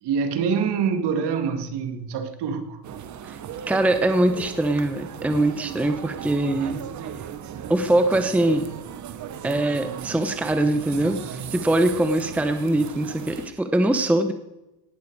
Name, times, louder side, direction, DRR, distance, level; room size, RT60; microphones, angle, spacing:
voice 1, 0.0-2.8, right 6 dB, 55° right, 2.2 m, -25 dB
sound 1, 2.8-13.5, right 9 dB, 35° right, 1.2 m, -37 dB
voice 2, 3.7-6.8 7.7-8.7 9.4-14.3, right 1 dB, 5° right, 0.9 m, -22 dB
18.0 x 12.5 x 4.8 m
cardioid pair, 140°, 49 cm